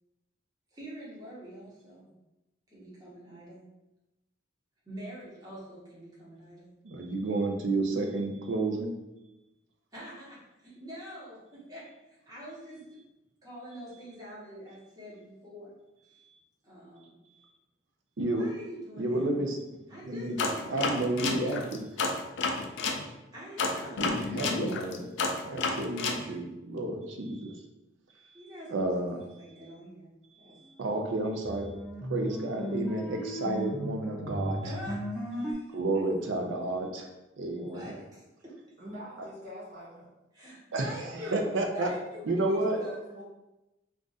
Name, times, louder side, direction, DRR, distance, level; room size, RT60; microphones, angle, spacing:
voice 1, 0.7-2.1 2.7-3.6 4.8-6.7 9.9-13.0 13.4-15.7 16.6-17.2 18.2-19.2 19.9-21.1 23.3-24.2 25.6-25.8 28.3-30.1 30.4-30.5 34.6-35.6 37.5-38.2 40.3-43.0, equal, 20° right, -7 dB, 0.9 m, -45 dB
voice 2, 6.8-8.9 18.2-18.5 19.0-19.6 20.1-20.4 20.7-21.9 24.0-25.1 25.4-27.5 28.3-28.4 28.7-29.2 30.8-31.7 32.1-34.6 35.7-37.1 37.4-37.9 40.7-41.0 41.2-41.9 42.3-42.8, right 2 dB, 75° right, 3 dB, 0.5 m, -31 dB
sound 1, 20.4-23.0 23.6-26.2, left 3 dB, 70° left, 0.4 m, -30 dB
sound 2, 30.9-35.5, equal, 5° left, 0.3 m, -36 dB
voice 3, 38.8-40.1 42.5-43.2, equal, 45° right, -7 dB, 1.0 m, -44 dB
2.5 x 2.4 x 3.9 m, 0.97 s
head